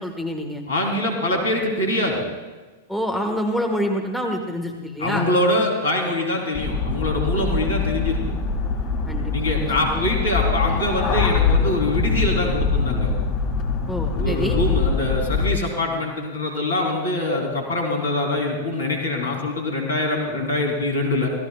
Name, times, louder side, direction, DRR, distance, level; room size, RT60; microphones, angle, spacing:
voice 1, 0.0-0.6 2.9-5.3 9.1-10.0 13.9-14.6, equal, ahead, 3 dB, 1.8 m, -27 dB
voice 2, 0.7-2.2 5.0-8.3 9.3-13.1 14.2-21.3, left 1 dB, 70° left, 1 dB, 4.1 m, -24 dB
sound 1, 6.5-15.5, left 5 dB, 40° left, 2.5 m, -23 dB
26.5 x 16.5 x 2.5 m, 1.3 s
figure-of-eight pair, 95°, 0 cm